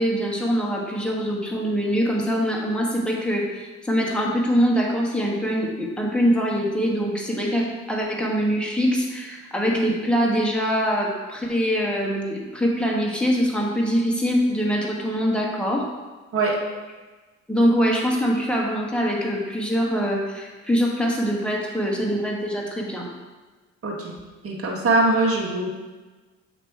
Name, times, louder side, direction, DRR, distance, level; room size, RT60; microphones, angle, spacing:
voice 1, 0.0-15.9 17.5-23.1, equal, 5° left, -2 dB, 1.3 m, -23 dB
voice 2, 24.4-25.7, right 2 dB, 50° right, -2 dB, 1.4 m, -22 dB
7.9 x 3.0 x 4.6 m, 1.3 s
cardioid pair, 90°, 30 cm